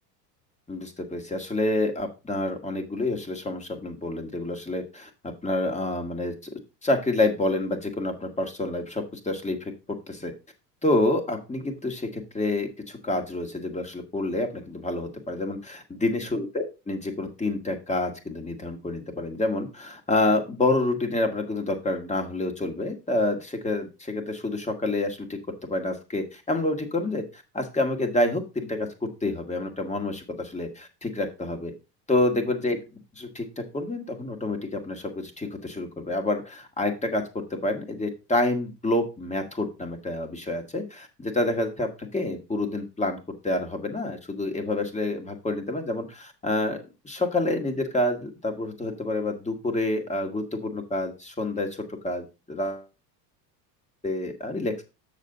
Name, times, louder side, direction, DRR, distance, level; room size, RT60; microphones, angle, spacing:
voice 1, 0.7-10.3 10.8-31.7 32.1-32.8 33.2-43.2 43.4-52.9 54.0-54.8, left 2 dB, 15° left, 5 dB, 1.9 m, -28 dB
7.5 x 6.6 x 3.9 m, 0.28 s
hypercardioid pair, 90°, 49 cm